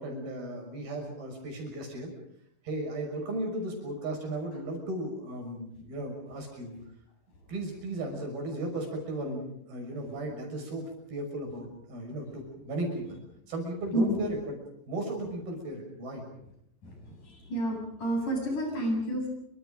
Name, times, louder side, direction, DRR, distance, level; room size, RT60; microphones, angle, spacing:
voice 1, 0.0-2.1 2.6-6.7 7.5-10.8 11.1-13.2 13.5-14.6 14.9-16.2, right 1 dB, 90° right, 2 dB, 8.1 m, -35 dB
voice 2, 13.9-14.3 16.8-16.9 17.2-19.3, equal, 55° left, 1 dB, 9.4 m, -30 dB
28.0 x 25.5 x 5.3 m, 0.72 s
omnidirectional pair, 4.2 m